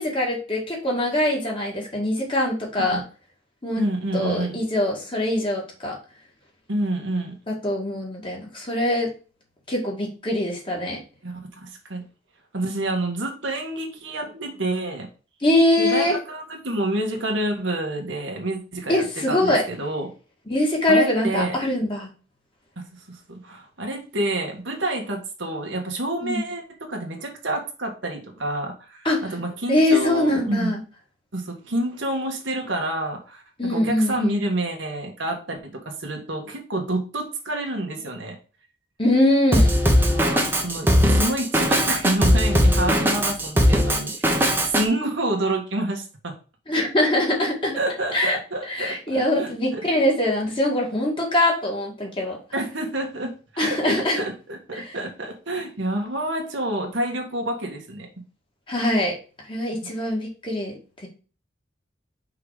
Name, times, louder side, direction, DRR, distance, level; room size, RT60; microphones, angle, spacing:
voice 1, 0.0-3.0 3.6-3.8 4.1-6.0 7.5-9.1 9.7-11.0 15.4-16.2 18.9-19.6 20.5-22.1 26.2-26.4 29.0-29.2 29.7-30.8 33.6-34.4 39.0-39.7 46.7-47.7 48.1-48.4 48.7-52.4 53.6-54.2 54.8-54.9 58.7-59.1 59.5-60.7 61.0-61.1, left 1 dB, 30° left, -1 dB, 2.1 m, -23 dB
voice 2, 3.8-4.6 6.7-7.4 11.2-12.0 12.5-15.1 15.8-20.1 20.9-21.6 23.1-30.8 31.3-38.4 40.0-44.4 44.6-46.3 47.7-49.8 52.5-53.8 54.1-58.1, right 1 dB, 90° right, 2 dB, 1.7 m, -28 dB
Drum kit, 39.5-44.8, equal, 10° right, 1.0 m, -19 dB
5.7 x 3.9 x 5.0 m, 0.36 s
head